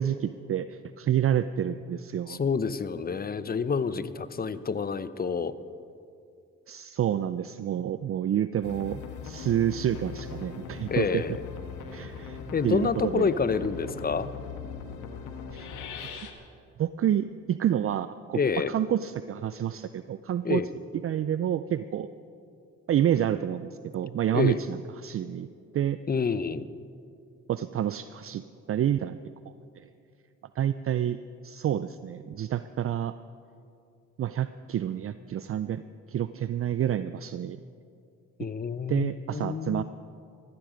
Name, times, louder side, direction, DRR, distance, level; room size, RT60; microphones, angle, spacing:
voice 1, 0.0-2.4 6.7-11.2 11.9-13.3 15.5-15.7 16.1-16.3 16.8-18.4 18.7-20.6 21.0-22.1 22.9-25.5 25.7-26.0 27.5-28.4 28.7-29.2 29.7-29.9 30.6-31.2 31.4-33.1 34.2-37.6 38.9-39.8, right 10 dB, 50° right, 13 dB, 0.5 m, -28 dB
voice 2, 2.3-5.5 10.9-11.4 12.5-14.3 18.3-18.7 20.4-20.7 24.3-24.6 26.1-26.7 38.4-39.8, left 5 dB, 30° left, 15 dB, 0.7 m, -28 dB
sound 1, 8.6-16.3, left 5 dB, 85° left, 1.5 m, -39 dB
15.5 x 13.5 x 5.1 m, 2.5 s
cardioid pair, 70°, 30 cm